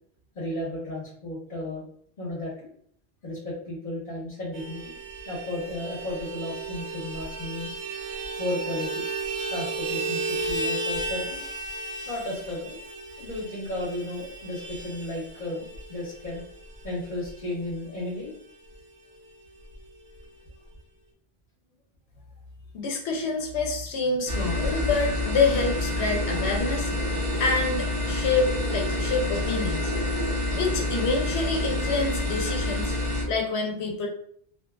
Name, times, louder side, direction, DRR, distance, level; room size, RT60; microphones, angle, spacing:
voice 1, 0.3-1.8 2.2-2.7 3.2-5.0 5.3-7.7 8.4-9.1 9.5-11.5 12.1-12.8 13.2-16.4 16.8-18.3, left 1 dB, 45° left, -6 dB, 0.9 m, -34 dB
Vehicle horn car horn honking, 4.5-18.4 18.7-18.8 19.1-19.3 19.6-20.3, right 3 dB, 90° right, 0.9 m, -34 dB
voice 2, 22.7-26.9 27.4-29.9 30.6-32.9 33.3-34.1, left 4 dB, 85° left, 1 dB, 0.8 m, -27 dB
sound 1, 24.3-33.2, left 1 dB, 35° right, 0.6 m, -27 dB
2.6 x 2.2 x 2.3 m, 0.63 s
omnidirectional pair, 1.1 m